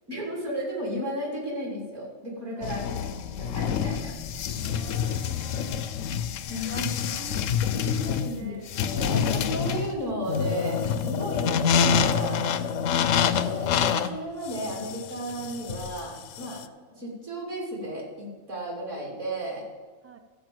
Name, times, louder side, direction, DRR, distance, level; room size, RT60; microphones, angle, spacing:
voice 1, 0.1-3.1 3.4-4.1 6.5-7.1 8.0-8.6 8.8-10.8 11.1-12.5 12.9-16.6 16.9-19.6, equal, 60° right, -3 dB, 3.4 m, -34 dB
sound 1, 2.6-16.6, left 7 dB, 70° left, 0.9 m, -27 dB
voice 2, 2.6-3.2 4.5-5.9 6.6-7.4 7.7-8.7 20.0-20.2, right 4 dB, 20° right, 5 dB, 0.4 m, -45 dB
13.5 x 5.1 x 7.7 m, 1.4 s
omnidirectional pair, 1.4 m